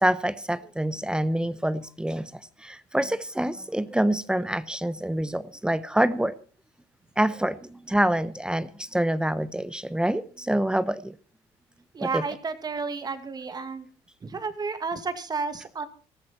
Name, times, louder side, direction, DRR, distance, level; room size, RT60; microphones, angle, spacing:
voice 1, 0.0-2.3 2.6-6.3 7.2-7.6 7.9-11.1 12.1-12.2, right 1 dB, 5° right, 16 dB, 0.9 m, -26 dB
voice 2, 11.9-13.9 14.2-15.9, right 4 dB, 35° right, 10 dB, 2.2 m, -31 dB
18.5 x 14.0 x 4.4 m, 0.38 s
supercardioid pair, 75°, 12 cm